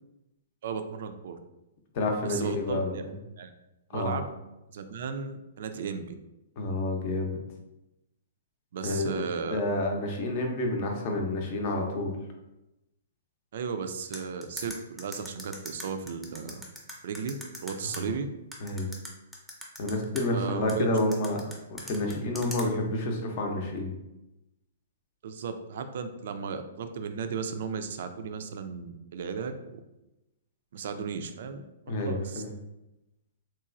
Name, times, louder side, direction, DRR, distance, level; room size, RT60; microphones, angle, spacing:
voice 1, 0.6-1.4 2.2-3.0 3.4-3.5 3.9-4.3 4.7-6.1 8.7-9.6 13.5-16.6 17.0-17.4 17.6-18.3 20.3-21.1 25.2-29.8 30.7-31.6 32.0-32.4, right 6 dB, 60° right, 8 dB, 0.3 m, -35 dB
voice 2, 1.9-3.1 3.9-4.2 6.6-7.4 8.8-9.1 9.4-12.1 17.9-18.0 18.6-18.9 19.8-21.4 21.7-23.9 31.9-32.5, left 1 dB, 45° left, 2 dB, 0.6 m, -29 dB
sound 1, 14.1-18.0 18.5-20.2 20.7-22.7, equal, ahead, 0.6 m, -40 dB
3.0 x 2.2 x 2.4 m, 0.94 s
hypercardioid pair, 120°, 0 cm